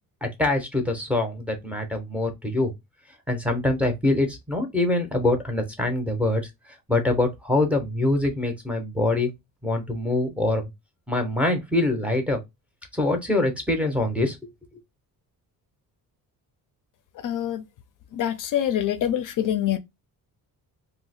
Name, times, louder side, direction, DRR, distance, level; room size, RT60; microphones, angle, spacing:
voice 1, 0.2-2.7 3.3-6.4 6.9-9.3 9.6-10.6 11.1-12.4 12.9-14.5, left 2 dB, 5° right, 0.6 m, -24 dB
voice 2, 17.2-17.6 18.1-19.8, left 11 dB, 60° left, 0.5 m, -25 dB
2.7 x 2.1 x 4.0 m
cardioid pair, 150°, 36 cm